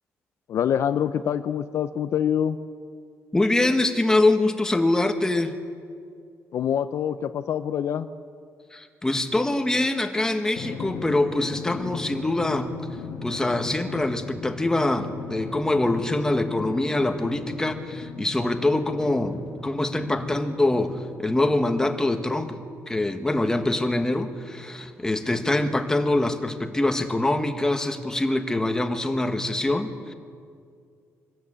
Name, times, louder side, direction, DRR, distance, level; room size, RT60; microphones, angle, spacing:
voice 1, 0.5-2.6 6.5-8.1, left 9 dB, 60° left, 11 dB, 0.6 m, -25 dB
voice 2, 3.3-5.5 8.7-12.8 13.2-30.1, left 2 dB, 10° left, 6 dB, 1.5 m, -24 dB
Drum, 10.6-21.6, left 5 dB, 75° left, 1.8 m, -38 dB
24.5 x 13.0 x 8.9 m, 2.2 s
cardioid pair, 125°, 5 cm